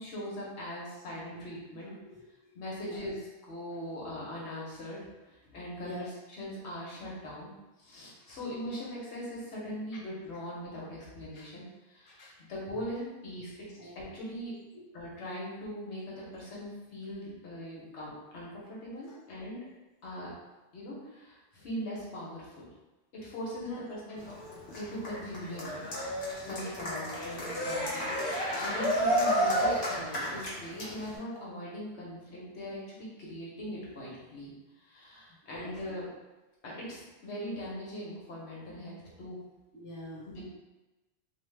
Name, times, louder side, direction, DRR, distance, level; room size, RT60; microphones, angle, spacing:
voice 1, 0.0-1.9 2.5-5.0 5.3-7.5 7.8-14.5 14.9-19.6 20.0-20.3 20.7-22.6 23.1-24.2 24.8-25.8 26.3-34.5 34.8-36.1 36.6-39.4 40.2-40.4, equal, 85° left, -5 dB, 1.2 m, -41 dB
voice 2, 2.0-3.1 3.8-4.0 5.8-6.1 8.2-8.3 11.3-11.5 12.1-12.4 12.7-12.8 13.8-14.1 19.1-19.2 23.6-23.8 24.1-24.2 26.4-26.9 35.5-36.0 39.7-40.4, left 1 dB, 25° left, -3 dB, 0.4 m, -46 dB
Cheering, 24.2-31.2, equal, 55° left, 1.0 m, -31 dB
3.1 x 2.0 x 3.2 m, 1.1 s
omnidirectional pair, 1.1 m